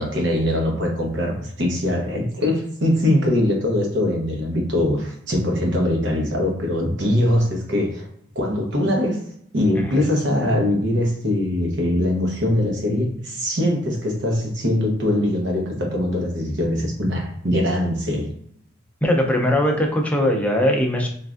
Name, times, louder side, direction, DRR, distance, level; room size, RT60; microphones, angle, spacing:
voice 1, 0.0-8.1 8.3-9.2 9.5-18.3, left 1 dB, 65° right, 1 dB, 0.8 m, -22 dB
voice 2, 19.0-21.1, left 1 dB, 5° left, 1 dB, 0.5 m, -20 dB
3.1 x 2.5 x 2.4 m, 0.67 s
head